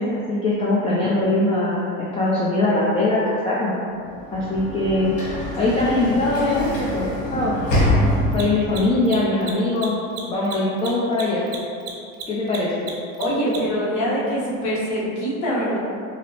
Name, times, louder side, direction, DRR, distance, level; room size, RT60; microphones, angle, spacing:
voice 1, 0.0-3.7 4.3-5.2 5.6-7.5 8.3-11.4 12.3-12.8, left 2 dB, 20° left, -6 dB, 0.4 m, -22 dB
Sliding door / Slam, 4.0-8.7, left 1 dB, 85° left, 1.3 m, -25 dB
Mechanisms, 5.2-5.3 8.2-13.8, right 6 dB, 55° right, 0.7 m, -35 dB
voice 2, 7.7-8.4 13.2-15.8, equal, 60° left, -7 dB, 1.3 m, -25 dB
4.8 x 2.0 x 2.9 m, 2.5 s
supercardioid pair, 120°, 32 cm